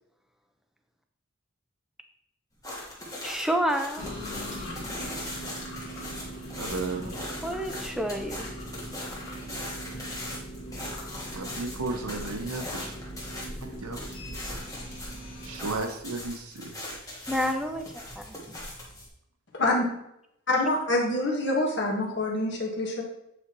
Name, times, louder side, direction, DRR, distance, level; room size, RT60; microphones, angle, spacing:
sound 1, 2.6-19.1, left 1 dB, 15° left, 1.2 m, -40 dB
voice 1, 3.2-4.1 7.4-8.5 17.3-17.8 18.2-18.4, equal, ahead, 5 dB, 0.4 m, -29 dB
sound 2, 4.0-15.7, equal, 80° left, 2.0 m, -40 dB
voice 2, 6.6-7.5 11.3-13.0 13.6-14.0 15.4-16.7, right 3 dB, 90° right, 5 dB, 0.9 m, -34 dB
voice 3, 19.5-19.9 20.5-23.0, left 2 dB, 55° left, -1 dB, 1.4 m, -26 dB
7.9 x 4.2 x 3.0 m, 0.79 s
head